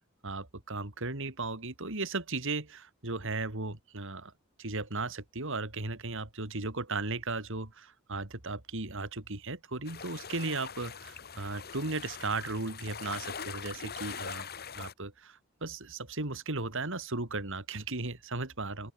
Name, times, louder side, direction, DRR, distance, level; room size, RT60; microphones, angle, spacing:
voice 1, 0.2-4.3 4.6-14.5 14.8-18.9, right 3 dB, 65° right, 3.4 m, -36 dB
sound 1, 9.8-14.9, left 7 dB, 50° left, 2.3 m, -42 dB
open air
head